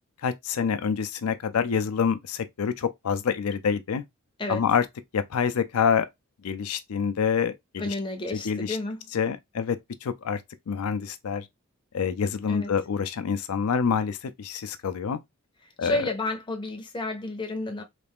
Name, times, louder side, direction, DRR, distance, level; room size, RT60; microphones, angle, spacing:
voice 1, 0.2-4.0 4.5-4.8 5.1-6.1 6.4-7.8 8.3-8.8 9.1-10.4 10.7-11.4 11.9-15.2 15.8-16.0, left 6 dB, 80° left, 0.5 m, -27 dB
voice 2, 7.8-9.1 12.5-12.7 15.8-17.8, left 2 dB, 20° left, 0.6 m, -31 dB
3.3 x 2.4 x 3.5 m
head